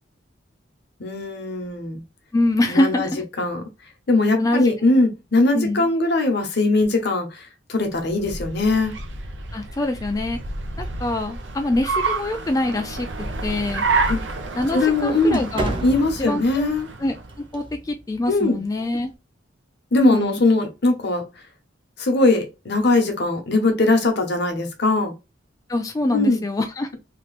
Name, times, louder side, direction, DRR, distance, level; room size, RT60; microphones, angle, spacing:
voice 1, 1.0-2.0 2.7-3.1 3.4-3.6 4.1-8.9 14.1-14.2 14.7-15.4 15.8-16.9 18.3-18.6 19.9-21.3 22.0-25.1 26.1-26.4, left 2 dB, 65° left, 0.9 m, -20 dB
voice 2, 2.3-3.2 4.4-4.7 5.5-5.9 9.5-10.4 10.8-13.1 13.4-13.8 14.6-15.8 16.2-16.6 17.0-17.1 17.5-19.1 19.9-20.4 25.7-26.9, left 2 dB, 20° left, 0.3 m, -24 dB
Car, 7.9-17.4, right 3 dB, 75° right, 0.7 m, -29 dB
sound 1, 8.3-19.1, right 1 dB, 25° right, 0.6 m, -38 dB
3.2 x 2.9 x 2.4 m
head